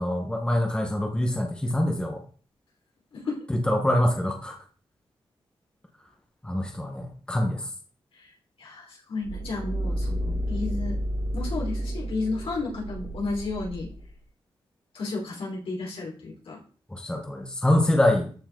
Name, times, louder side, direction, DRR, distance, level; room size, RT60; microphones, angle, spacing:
voice 1, 0.0-2.2 3.5-4.6 6.4-7.7 16.9-18.3, left 1 dB, 10° left, 2 dB, 1.5 m, -25 dB
voice 2, 8.6-11.0 11.3-13.9 14.9-16.6, left 3 dB, 75° left, -4 dB, 4.7 m, -32 dB
sound 1, 9.2-14.1, equal, 80° right, 3.2 m, -31 dB
13.5 x 6.0 x 4.0 m, 0.42 s
wide cardioid pair, 135°, 10 cm